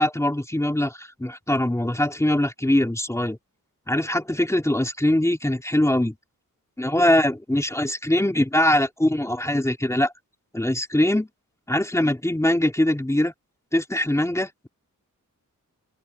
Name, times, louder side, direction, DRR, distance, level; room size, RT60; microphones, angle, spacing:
voice 1, 0.0-3.4 3.9-6.1 6.8-10.1 10.5-11.3 11.7-13.3 13.7-14.7, left 1 dB, 10° left, 3.0 m, -22 dB
open air
wide cardioid pair, 110°, 32 cm